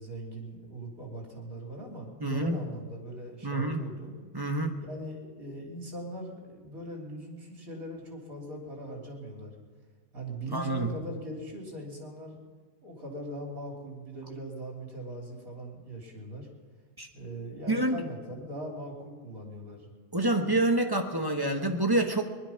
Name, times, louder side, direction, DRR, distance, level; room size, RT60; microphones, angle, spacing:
voice 1, 0.0-4.2 4.8-9.5 10.1-12.4 12.8-16.5 17.1-19.9, right 1 dB, 55° right, 0 dB, 3.6 m, -40 dB
voice 2, 2.2-2.6 3.4-3.8 4.3-4.8 10.5-10.9 17.0-17.1 17.7-18.0 20.1-22.2, right 2 dB, 15° right, 3 dB, 0.9 m, -27 dB
20.0 x 11.5 x 5.8 m, 1.5 s
omnidirectional pair, 1.7 m